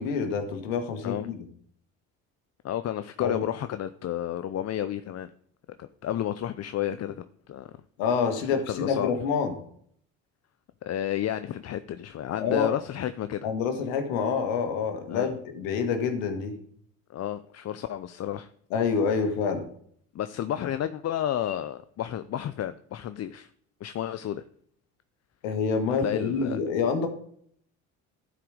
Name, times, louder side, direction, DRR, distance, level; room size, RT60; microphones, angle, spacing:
voice 1, 0.0-1.4 3.2-3.4 8.0-9.5 12.4-12.7 13.4-16.6 18.7-19.6 25.4-27.1, left 5 dB, 90° left, 6 dB, 1.7 m, -27 dB
voice 2, 1.0-1.4 2.6-5.3 5.8-7.7 8.5-9.1 10.8-13.5 15.1-15.3 17.1-18.5 20.1-23.5 23.8-24.4 26.0-26.6, left 11 dB, 40° left, 12 dB, 0.6 m, -31 dB
11.5 x 5.0 x 5.0 m, 0.62 s
supercardioid pair, 75°, 38 cm